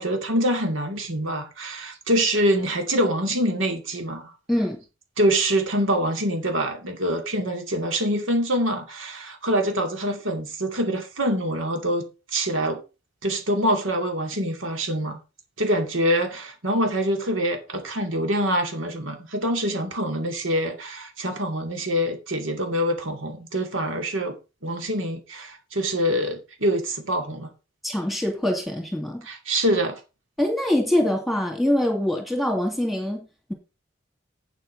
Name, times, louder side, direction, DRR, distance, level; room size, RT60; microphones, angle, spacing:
voice 1, 0.0-4.3 5.2-12.8 13.2-15.2 15.6-24.4 24.6-27.5 29.3-30.0, equal, 85° right, 2.5 m, -25 dB
voice 2, 4.5-4.8 27.8-29.3 30.4-33.5, left 1 dB, ahead, 2.5 m, -24 dB
8.5 x 7.9 x 5.4 m
head